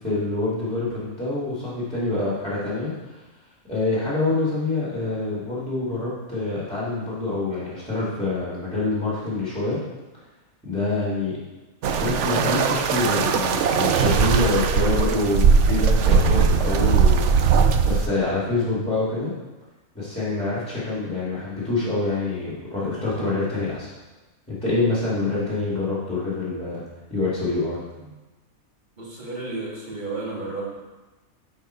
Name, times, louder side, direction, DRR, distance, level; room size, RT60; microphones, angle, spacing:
voice 1, 0.0-3.2 3.7-9.8 10.6-11.4 11.9-17.6 17.8-19.3 19.9-23.9 24.5-26.8 27.1-27.8, left 3 dB, 5° left, -8 dB, 2.4 m, -26 dB
sound 1, 11.8-18.1, right 6 dB, 65° right, 0.8 m, -19 dB
voice 2, 29.0-30.7, right 3 dB, 35° right, -5 dB, 2.3 m, -32 dB
11.5 x 4.6 x 4.5 m, 1.1 s
omnidirectional pair, 1.5 m